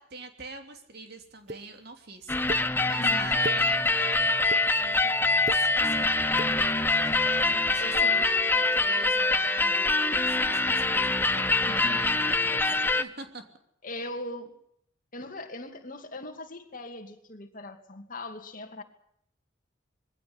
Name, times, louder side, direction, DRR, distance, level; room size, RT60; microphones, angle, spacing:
voice 1, 0.0-4.4 4.7-6.8 7.0-13.4, right 3 dB, 55° right, 6 dB, 3.2 m, -44 dB
sound 1, 1.5-1.6 2.5-2.6 3.2-3.6 4.2-4.6 5.3-5.6 6.3-6.5, right 1 dB, 35° right, 1.0 m, -35 dB
sound 2, 2.3-13.0, left 3 dB, 10° left, 0.9 m, -24 dB
voice 2, 3.0-3.4 7.3-7.5 7.8-8.2 11.7-12.2 13.8-14.5 15.1-18.8, left 1 dB, 45° left, 5 dB, 2.7 m, -40 dB
22.0 x 16.5 x 9.8 m, 0.70 s
head